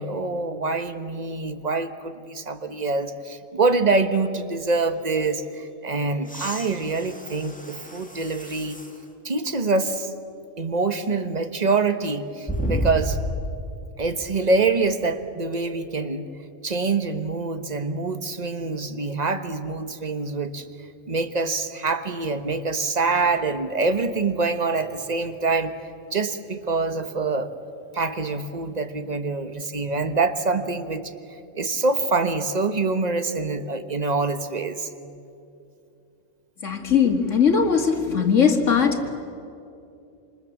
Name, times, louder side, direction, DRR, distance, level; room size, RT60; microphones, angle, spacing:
voice 1, 0.0-8.8 9.2-10.1 10.6-13.2 14.0-16.3 16.6-20.6 21.1-25.8 26.1-27.5 27.9-31.1 31.5-34.9, right 3 dB, 35° right, 9 dB, 1.4 m, -25 dB
sound 1, 6.2-9.0 9.6-9.7 12.4-13.7 15.5-15.6, equal, 5° left, 1.9 m, -31 dB
voice 2, 36.6-39.1, left 6 dB, 75° left, 5 dB, 2.3 m, -20 dB
27.5 x 27.0 x 7.3 m, 2.7 s
omnidirectional pair, 1.3 m